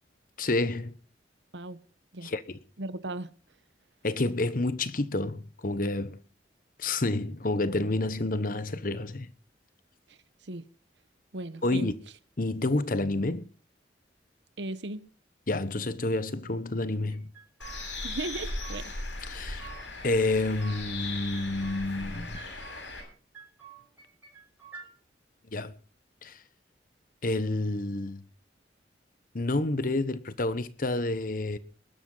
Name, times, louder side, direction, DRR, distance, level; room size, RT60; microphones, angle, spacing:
voice 1, 0.4-0.9 2.2-2.6 4.0-6.2 6.8-9.3 11.6-11.9 12.4-13.5 15.5-17.3 19.3-19.6 20.0-22.4 25.5-25.7 26.2-26.4 27.2-28.2 29.3-31.6, left 2 dB, 50° left, 1.0 m, -29 dB
voice 2, 2.8-3.3 10.5-10.6 11.3-11.9 14.6-15.0 18.0-18.9, right 2 dB, 75° right, 1.1 m, -36 dB
sound 1, 17.1-18.1 18.3-19.1 19.3-20.8 21.1-22.1 22.3-23.1 23.3-24.9, right 7 dB, 10° right, 6.6 m, -50 dB
Bird, 17.6-23.0, left 2 dB, 85° left, 7.7 m, -38 dB
21.0 x 12.0 x 3.9 m
head